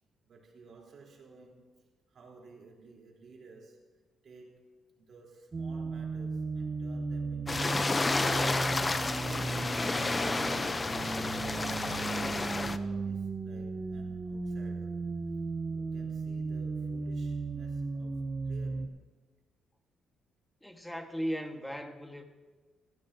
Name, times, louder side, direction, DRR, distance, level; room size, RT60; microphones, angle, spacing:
voice 1, 0.3-3.9 4.2-4.7 5.0-9.3 9.6-15.0 15.7-19.0, right 4 dB, 55° right, 3.7 m, -54 dB
sound 1, 5.5-18.9, right 3 dB, 35° right, 0.9 m, -36 dB
sound 2, 7.5-12.8, left 3 dB, 25° left, 0.6 m, -31 dB
voice 2, 20.6-22.2, equal, 5° left, 1.5 m, -37 dB
16.0 x 14.0 x 2.8 m
cardioid pair, 90°, 0 cm